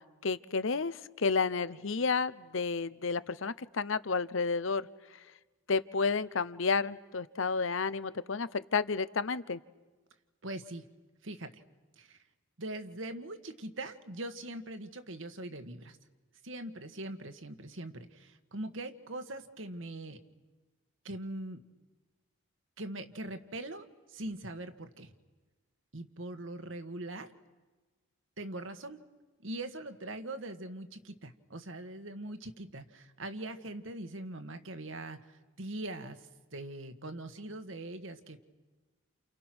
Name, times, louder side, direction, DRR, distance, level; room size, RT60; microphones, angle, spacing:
voice 1, 0.0-4.9 5.7-9.6, left 4 dB, 70° left, 16 dB, 0.8 m, -31 dB
voice 2, 10.4-10.8 11.2-11.5 12.0-12.2 12.6-16.0 16.4-20.2 21.0-21.6 22.8-25.1 25.9-27.3 28.4-29.0 29.4-35.2 35.6-36.2 36.5-38.4, right 1 dB, 70° right, 8 dB, 1.7 m, -41 dB
30.0 x 29.5 x 6.2 m, 1.3 s
head